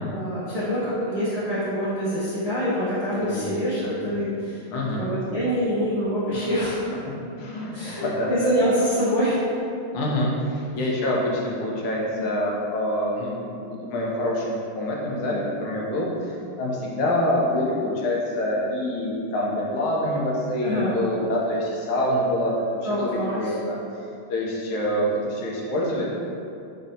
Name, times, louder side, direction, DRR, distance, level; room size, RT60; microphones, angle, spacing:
voice 1, 0.0-4.6 5.0-6.9 7.7-9.5 12.1-12.3 15.1-15.4 20.6-21.0 22.8-23.5, equal, 40° right, -13 dB, 0.5 m, -25 dB
voice 2, 3.2-3.5 3.8-4.0 4.7-5.0 6.3-6.5 7.4-8.3 9.9-23.8 24.3-26.2, left 1 dB, 80° left, -3 dB, 1.5 m, -26 dB
5.0 x 2.7 x 2.6 m, 2.6 s
omnidirectional pair, 2.3 m